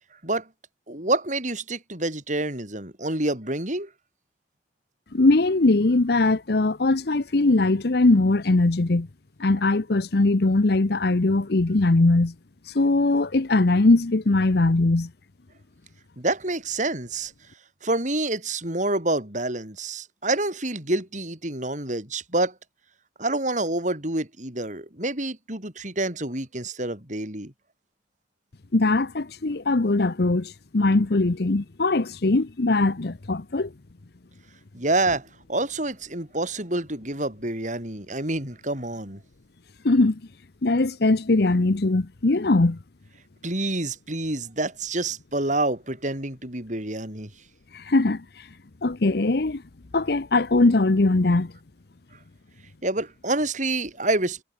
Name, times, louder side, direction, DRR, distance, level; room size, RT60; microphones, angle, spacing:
voice 1, 0.9-3.9 16.2-17.3 17.8-22.5 23.2-27.5 34.7-39.2 43.4-47.3 52.8-54.4, right 2 dB, 45° right, 6.4 m, -27 dB
voice 2, 5.1-9.1 9.4-12.3 12.7-15.1 28.7-33.7 39.8-40.2 40.6-42.8 47.7-48.2 48.8-49.6 49.9-51.5, left 2 dB, 60° left, 0.8 m, -21 dB
head